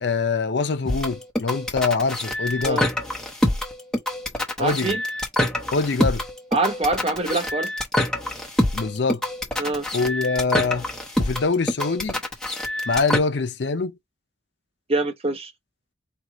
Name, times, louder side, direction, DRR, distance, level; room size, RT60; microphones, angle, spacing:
voice 1, 0.0-2.9 4.6-5.0 5.7-6.2 8.7-9.2 9.9-10.9 11.2-12.2 12.9-13.9, left 4 dB, 60° left, 0.6 m, -24 dB
sound 1, 0.8-13.2, left 1 dB, 5° left, 0.9 m, -25 dB
voice 2, 4.6-5.0 6.5-7.7 9.6-9.8 14.9-15.5, right 2 dB, 30° right, 0.8 m, -24 dB
4.6 x 2.4 x 3.8 m
head